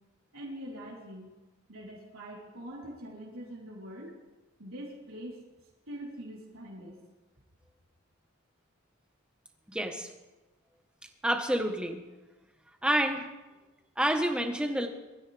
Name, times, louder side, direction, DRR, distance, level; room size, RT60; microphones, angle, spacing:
voice 1, 0.3-1.4 1.7-4.1 4.6-5.4 5.9-7.0, equal, 75° right, -4 dB, 3.9 m, -43 dB
voice 2, 9.7-10.1 11.2-12.0 12.8-13.3 14.0-14.9, right 1 dB, 5° right, 4 dB, 1.3 m, -28 dB
23.0 x 14.0 x 3.5 m, 1.1 s
head